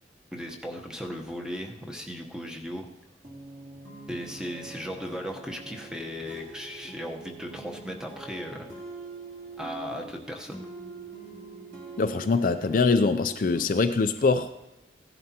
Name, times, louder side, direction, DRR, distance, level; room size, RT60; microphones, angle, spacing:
voice 1, 0.3-2.9 4.1-8.7 9.6-10.6, equal, 5° right, 2 dB, 0.9 m, -37 dB
sound 1, 3.2-13.7, right 3 dB, 40° right, 2.4 m, -44 dB
voice 2, 12.0-14.5, left 4 dB, 45° left, 9 dB, 0.4 m, -23 dB
16.5 x 11.0 x 2.9 m, 0.94 s
head